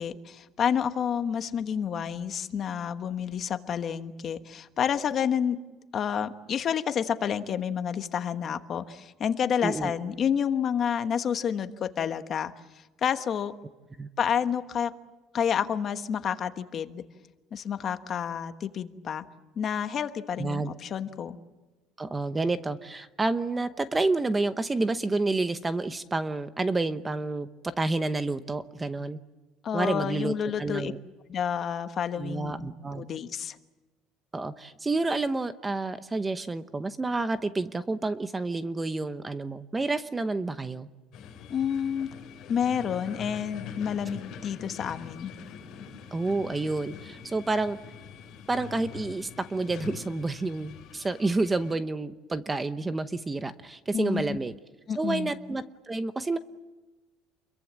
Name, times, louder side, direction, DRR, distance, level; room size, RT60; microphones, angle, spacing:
voice 1, 0.0-5.6 5.9-12.5 13.0-13.5 14.2-14.9 15.3-17.0 17.5-19.2 19.6-21.4 29.6-30.9 31.3-32.7 32.9-33.6 41.5-42.1 42.5-45.3 53.9-54.4 54.9-55.3, left 8 dB, 35° left, 9 dB, 1.2 m, -29 dB
voice 2, 9.6-9.9 14.0-14.1 20.4-20.7 22.0-29.2 29.7-31.0 32.2-33.0 34.3-40.9 46.1-47.8 48.5-54.5 55.0-56.4, right 3 dB, 15° right, 11 dB, 0.9 m, -29 dB
sound 1, 41.1-51.7, left 7 dB, 50° left, 7.2 m, -44 dB
28.5 x 23.0 x 7.4 m, 1.2 s
cardioid pair, 155°, 0 cm